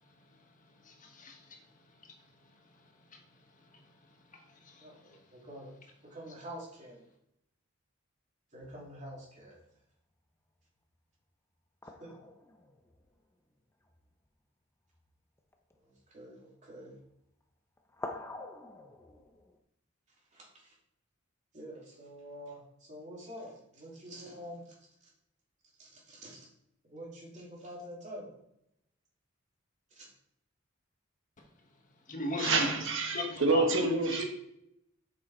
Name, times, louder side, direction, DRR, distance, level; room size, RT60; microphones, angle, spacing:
voice 1, 0.8-1.6 4.6-4.9 32.1-32.7 33.1-33.9, left 1 dB, 40° left, 2 dB, 1.4 m, -37 dB
voice 2, 4.8-5.7 6.0-7.0 8.5-9.6 12.0-12.1 15.8-16.9 20.3-20.7 21.5-24.8 25.0-25.1 25.8-26.5 26.8-28.4 29.9-30.1, equal, 35° right, -3 dB, 2.8 m, -47 dB
sound 1, 8.6-9.7 11.8-14.1 14.9-15.1 15.4-16.1 17.0-17.4 17.8-19.6, left 2 dB, 15° left, 0.7 m, -47 dB
voice 3, 32.4-34.2, right 3 dB, 65° right, 3 dB, 1.2 m, -28 dB
7.0 x 6.2 x 4.4 m, 0.77 s
head